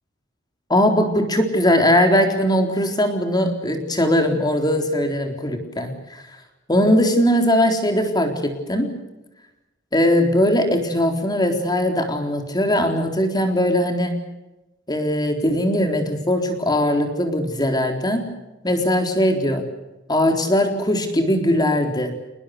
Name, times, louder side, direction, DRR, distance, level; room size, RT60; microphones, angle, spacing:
voice 1, 0.7-6.2 6.7-8.9 9.9-14.2 14.9-18.3 18.6-19.6 20.1-22.1, left 1 dB, 20° left, 4 dB, 4.0 m, -20 dB
29.5 x 20.0 x 6.8 m, 1.0 s
head